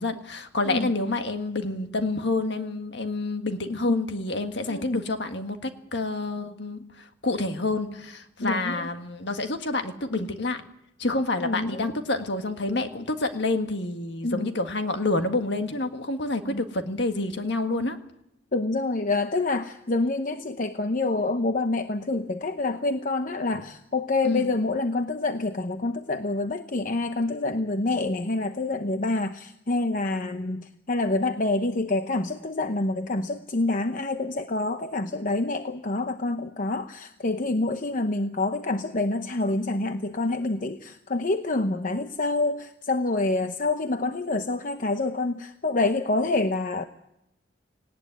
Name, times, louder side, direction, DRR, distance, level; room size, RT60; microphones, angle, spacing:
voice 1, 0.0-10.6 11.0-18.0 23.5-23.6 24.2-24.5, left 2 dB, 65° left, 7 dB, 1.7 m, -28 dB
voice 2, 4.7-5.1 8.4-8.9 11.4-11.9 14.2-14.5 16.4-16.6 18.5-46.8, left 2 dB, 45° left, 8 dB, 0.9 m, -27 dB
18.5 x 18.0 x 9.3 m, 0.84 s
head